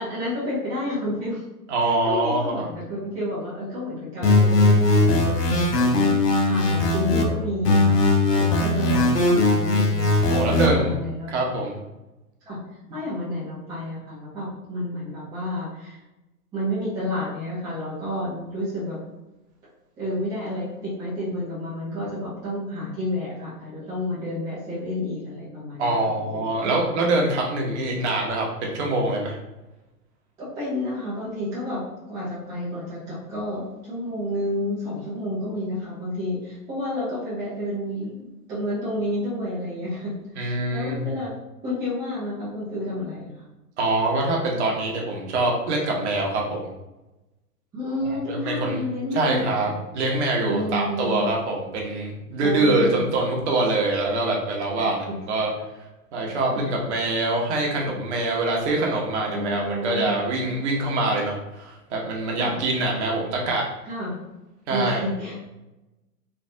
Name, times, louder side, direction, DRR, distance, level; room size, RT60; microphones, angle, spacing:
voice 1, 0.0-1.4 2.0-11.3 12.5-12.6 12.9-16.0 16.5-19.0 20.0-26.7 30.4-41.3 41.6-43.5 47.7-49.8 50.5-51.3 52.4-53.0 54.8-54.9 56.5-56.6 59.3-60.3 62.4-62.6 63.8-64.2 64.7-65.4, left 1 dB, 10° right, -9 dB, 0.5 m, -30 dB
voice 2, 1.7-2.7 10.3-10.9 11.3-11.8 25.8-29.4 40.4-41.1 43.8-46.7 48.3-48.8 49.1-55.5 56.1-63.6 64.7-65.0, right 2 dB, 45° right, -1 dB, 0.8 m, -24 dB
sound 1, 4.2-7.2 7.6-10.7, left 2 dB, 90° left, 0.7 m, -19 dB
3.2 x 2.4 x 2.6 m, 1.0 s
figure-of-eight pair, 115°, 47 cm